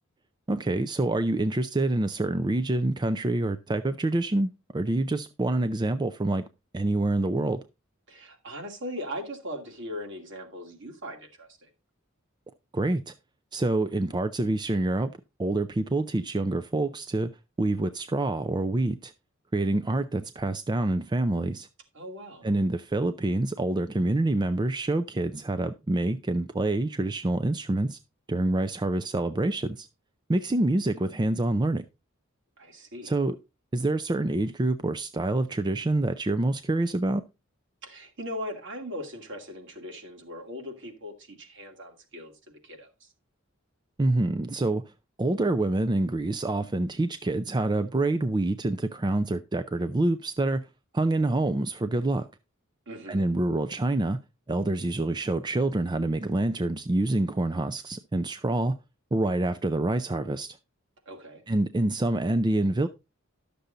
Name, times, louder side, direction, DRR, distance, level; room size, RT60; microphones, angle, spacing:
voice 1, 0.5-6.4 6.7-7.6 12.7-13.1 13.5-15.1 15.4-17.3 17.6-19.1 19.5-21.7 22.4-28.0 28.3-29.9 30.3-31.8 33.0-33.4 33.7-37.2 44.0-44.8 45.2-50.7 50.9-52.3 53.1-54.2 54.5-58.8 59.1-60.6 61.5-62.9, right 2 dB, 20° right, 0.4 m, -26 dB
voice 2, 8.1-11.7 21.9-22.5 32.6-33.1 37.8-43.1 52.9-53.3 61.1-61.4, equal, 60° right, 2.4 m, -39 dB
11.5 x 6.8 x 3.8 m
head